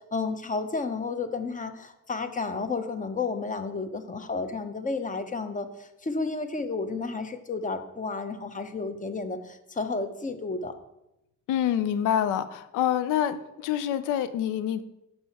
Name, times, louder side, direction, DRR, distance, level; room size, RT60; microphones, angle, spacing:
voice 1, 0.1-10.7, left 4 dB, 25° left, 9 dB, 0.7 m, -32 dB
voice 2, 11.5-14.8, left 10 dB, 90° left, 13 dB, 0.5 m, -26 dB
5.6 x 5.6 x 4.1 m, 0.88 s
cardioid pair, 90°, 30 cm